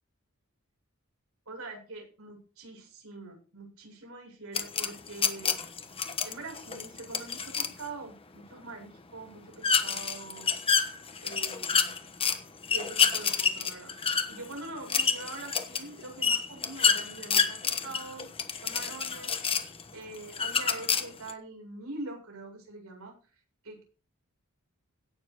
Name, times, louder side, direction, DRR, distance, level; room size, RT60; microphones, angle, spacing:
voice 1, 1.5-5.5 6.2-10.6 11.2-11.9 12.7-13.9 14.3-18.3 18.6-19.4 19.9-23.1 23.6-23.9, right 2 dB, 80° right, 0 dB, 7.7 m, -43 dB
sound 1, 4.5-7.8 9.6-12.4 12.6-19.8 20.3-21.3, left 6 dB, 25° left, 1.2 m, -28 dB
17.0 x 7.3 x 4.9 m, 0.36 s
head